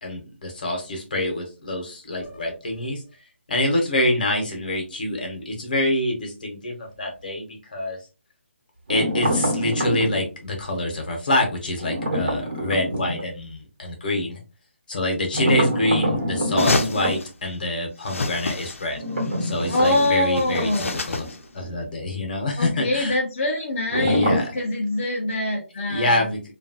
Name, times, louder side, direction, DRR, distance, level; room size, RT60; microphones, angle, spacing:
voice 1, 0.0-3.0 3.5-8.0 8.9-14.4 14.9-19.0 19.4-23.2 24.0-24.5 25.9-26.4, left 1 dB, 40° left, 2 dB, 0.9 m, -26 dB
sound 1, 8.9-10.2 11.8-13.2 15.3-17.2 18.9-21.3 21.6-21.7 23.9-24.6, equal, 45° right, 1.1 m, -26 dB
sound 2, 16.6-17.3 18.0-18.9 19.2-21.4, left 3 dB, 90° left, 0.5 m, -28 dB
voice 2, 19.7-20.9 22.6-26.3, left 1 dB, 25° left, -6 dB, 0.5 m, -24 dB
2.9 x 2.4 x 2.6 m, 0.32 s
hypercardioid pair, 175°, 7 cm